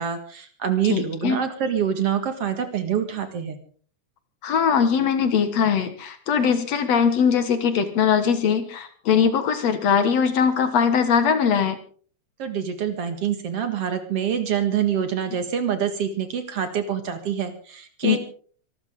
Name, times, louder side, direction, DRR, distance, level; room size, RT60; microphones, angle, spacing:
voice 1, 0.0-3.6 12.4-18.2, right 8 dB, 55° right, 8 dB, 2.5 m, -26 dB
voice 2, 0.9-1.4 4.4-11.8 18.0-18.2, left 7 dB, 60° left, 10 dB, 2.5 m, -21 dB
25.0 x 13.5 x 3.7 m, 0.43 s
omnidirectional pair, 3.5 m